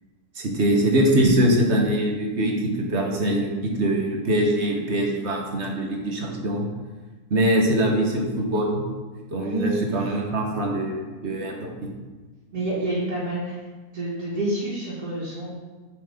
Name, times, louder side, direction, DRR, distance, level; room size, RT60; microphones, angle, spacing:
voice 1, 0.3-6.7 7.3-8.8 9.3-11.9, right 1 dB, 50° right, 0 dB, 1.5 m, -23 dB
voice 2, 9.4-10.1 12.5-13.6 13.9-15.6, right 2 dB, 90° right, -10 dB, 2.3 m, -28 dB
7.4 x 4.7 x 5.0 m, 1.3 s
omnidirectional pair, 1.6 m